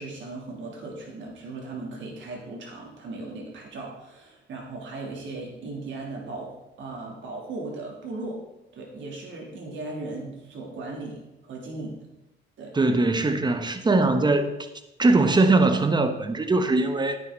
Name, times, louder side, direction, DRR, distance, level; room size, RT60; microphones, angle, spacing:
voice 1, 0.0-8.4 8.7-12.0 12.6-12.7, right 2 dB, 70° right, -1 dB, 3.3 m, -37 dB
voice 2, 12.7-14.6 15.0-17.2, right 2 dB, 20° right, 8 dB, 1.1 m, -21 dB
9.9 x 9.8 x 4.1 m, 0.97 s
cardioid pair, 90°, 20 cm